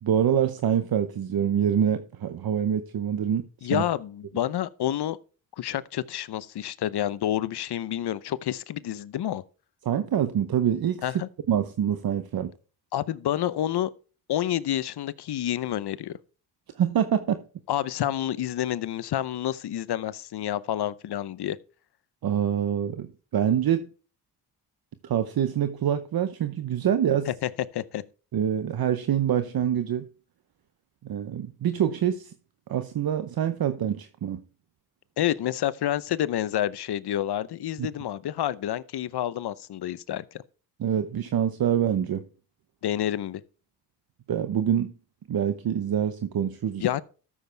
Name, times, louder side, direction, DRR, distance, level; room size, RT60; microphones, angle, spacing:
voice 1, 0.0-3.8 9.8-12.5 16.8-17.4 22.2-23.9 25.0-27.3 28.3-30.1 31.0-32.3 32.7-34.4 37.8-37.9 40.8-42.3 44.3-44.9 45.3-46.8, right 9 dB, 60° right, 0.9 m, -25 dB
voice 2, 3.6-5.2 5.6-9.4 11.0-11.3 12.9-13.9 14.3-16.2 17.7-21.6 27.3-28.0 35.2-40.4 42.8-43.4 46.8-47.0, left 11 dB, 70° left, 0.8 m, -29 dB
13.5 x 7.3 x 3.4 m
cardioid pair, 85°, 41 cm